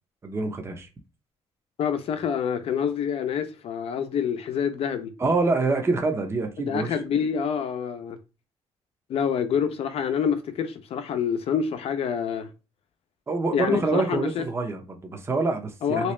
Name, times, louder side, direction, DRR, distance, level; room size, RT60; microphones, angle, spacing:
voice 1, 0.2-0.9 5.2-6.9 13.3-16.1, right 3 dB, 20° right, 0.7 m, -26 dB
voice 2, 1.8-5.1 6.7-8.2 9.1-12.5 13.5-14.4 15.8-16.1, left 7 dB, 55° left, 0.6 m, -27 dB
3.3 x 2.8 x 3.1 m
cardioid pair, 130°, 12 cm